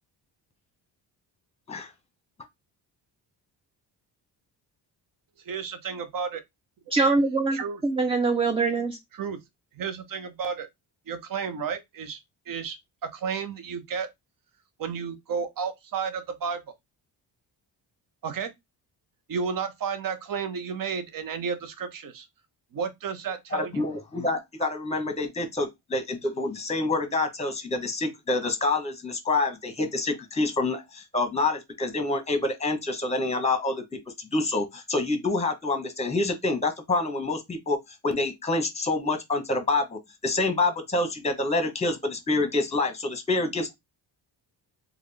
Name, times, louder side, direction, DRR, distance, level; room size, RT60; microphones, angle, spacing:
voice 1, 5.4-6.4 7.5-7.8 9.1-9.4 9.7-10.7 11.1-12.2 12.5-12.8 13.1-14.1 14.8-16.6 18.2-18.5 19.3-22.3 22.7-23.8, right 6 dB, 50° right, 0.9 m, -32 dB
voice 2, 6.9-9.0, right 3 dB, 15° right, 0.4 m, -23 dB
voice 3, 23.5-33.8 34.2-37.8 38.0-43.7, left 2 dB, 15° left, 0.9 m, -27 dB
3.5 x 2.4 x 3.3 m
cardioid pair, 100°, 43 cm